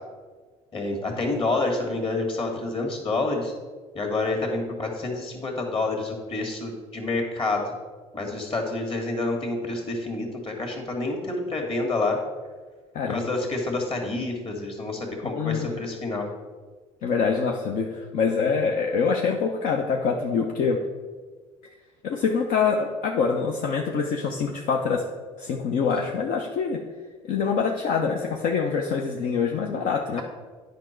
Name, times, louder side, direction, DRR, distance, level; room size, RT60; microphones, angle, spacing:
voice 1, 0.7-3.5 3.9-7.6 8.1-12.2 13.1-16.3, left 2 dB, 35° left, 1 dB, 2.1 m, -28 dB
voice 2, 12.9-13.3 15.2-15.8 17.0-20.8 22.0-25.1 25.4-26.8 27.2-30.2, left 5 dB, 60° left, 1 dB, 0.8 m, -25 dB
9.4 x 5.1 x 4.5 m, 1.4 s
hypercardioid pair, 65°, 16 cm